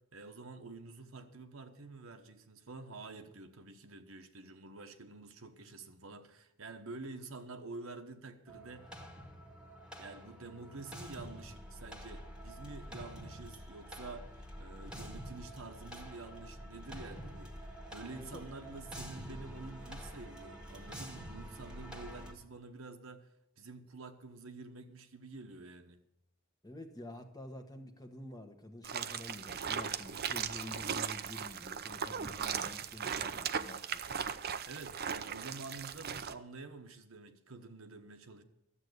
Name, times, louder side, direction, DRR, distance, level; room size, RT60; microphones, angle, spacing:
voice 1, 0.0-8.9 10.0-14.3 14.6-23.3 23.6-26.0 34.4-38.4, right 3 dB, 70° right, 1.2 m, -48 dB
sound 1, 8.5-22.3, equal, 5° right, 1.5 m, -47 dB
voice 2, 18.1-18.5 26.6-34.0, left 1 dB, 20° left, 1.2 m, -48 dB
sound 2, 28.8-36.3, right 7 dB, 50° right, 0.6 m, -38 dB
12.5 x 8.1 x 8.0 m
head